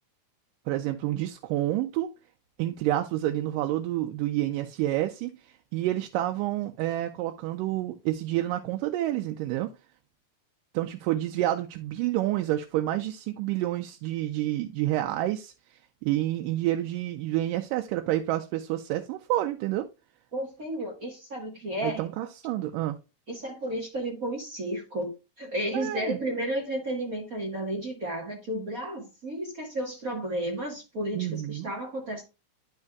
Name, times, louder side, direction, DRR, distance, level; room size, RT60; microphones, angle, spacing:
voice 1, 0.7-2.1 2.6-9.7 10.7-19.9 21.8-23.0 25.7-26.2 31.1-31.7, right 14 dB, 85° right, 2.2 m, -29 dB
voice 2, 20.3-22.0 23.3-32.2, right 1 dB, 45° right, 1.1 m, -32 dB
11.0 x 5.4 x 2.3 m
omnidirectional pair, 3.8 m